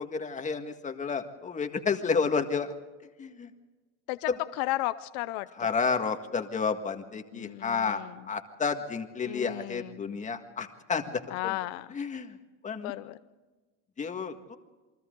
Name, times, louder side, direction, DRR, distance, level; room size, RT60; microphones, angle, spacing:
voice 1, 0.0-2.7 3.2-3.5 4.3-4.4 5.6-8.0 8.3-11.6 11.9-12.4 12.6-12.9 14.0-14.6, left 5 dB, 20° left, 6 dB, 1.8 m, -31 dB
voice 2, 4.1-5.7 7.3-8.2 9.3-10.2 11.3-12.0 12.7-13.2, left 18 dB, 85° left, 13 dB, 0.8 m, -34 dB
29.0 x 23.5 x 3.9 m, 1.2 s
cardioid pair, 145°, 33 cm